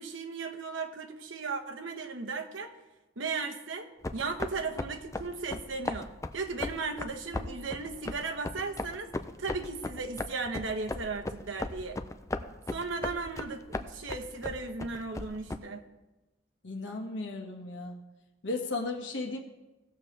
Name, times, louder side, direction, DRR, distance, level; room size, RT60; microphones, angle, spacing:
voice 1, 0.0-2.7 3.2-9.1 9.4-12.0 12.7-15.8, right 4 dB, 85° right, 4 dB, 1.1 m, -36 dB
sound 1, 4.0-15.6, left 2 dB, 15° left, 0.4 m, -38 dB
voice 2, 16.6-18.0 18.4-19.4, left 3 dB, 70° left, 2 dB, 1.5 m, -35 dB
17.5 x 7.0 x 3.3 m, 1.1 s
head